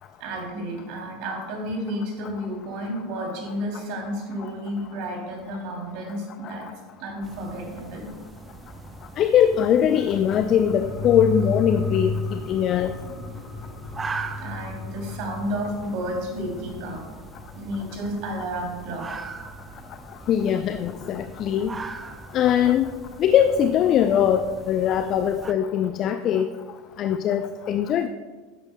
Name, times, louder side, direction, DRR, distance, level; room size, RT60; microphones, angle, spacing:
voice 1, 0.2-6.7 7.0-8.1 14.4-17.0 17.6-19.3, equal, 55° right, 0 dB, 2.9 m, -31 dB
sound 1, 7.2-25.5, right 4 dB, 25° right, 0.7 m, -41 dB
voice 2, 9.2-12.9 20.3-21.7 22.3-22.9 23.2-26.5 27.0-28.1, left 9 dB, 45° left, 10 dB, 0.4 m, -21 dB
sound 2, 10.1-19.2 19.5-19.6, left 3 dB, 30° left, 2.0 m, -34 dB
11.5 x 9.6 x 2.2 m, 1.4 s
figure-of-eight pair, 75°, 0 cm